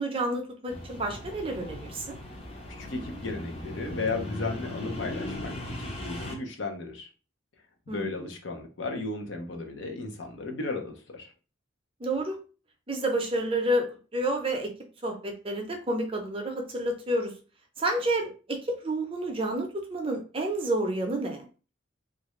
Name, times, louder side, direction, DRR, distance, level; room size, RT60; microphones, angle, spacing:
voice 1, 0.0-2.2 7.9-8.1 12.0-12.4 12.9-14.7 15.0-17.3 17.8-21.5, right 1 dB, 30° right, 3 dB, 0.6 m, -29 dB
sound 1, 0.7-6.3, left 1 dB, 30° left, 0.6 m, -38 dB
voice 2, 2.8-7.1 7.9-11.3, left 3 dB, 65° left, 3 dB, 0.7 m, -35 dB
3.1 x 2.5 x 3.0 m, 0.36 s
head